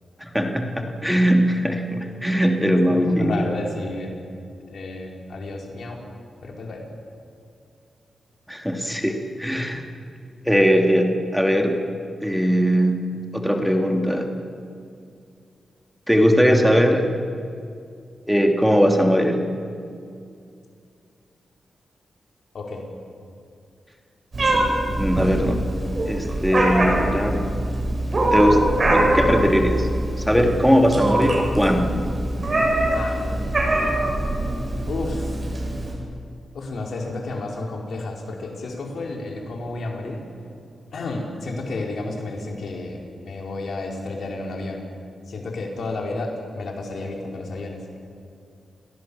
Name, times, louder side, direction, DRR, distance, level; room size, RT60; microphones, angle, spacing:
voice 1, 0.2-3.4 8.5-9.8 10.4-11.8 12.2-13.1 13.3-14.3 16.1-17.1 18.3-19.4 25.0-25.6 26.0-27.5 28.3-28.6 28.9-29.9 30.3-32.0, equal, ahead, 3 dB, 2.7 m, -20 dB
voice 2, 2.9-4.2 4.7-6.0 6.4-6.9 22.5-22.9 32.9-33.6 34.8-35.3 36.5-40.2 40.9-44.8 45.3-47.8, left 2 dB, 75° left, 0 dB, 4.6 m, -31 dB
Meow, 24.3-35.9, right 1 dB, 45° right, 7.6 m, -23 dB
29.5 x 18.0 x 7.1 m, 2.4 s
cardioid pair, 65°, 0 cm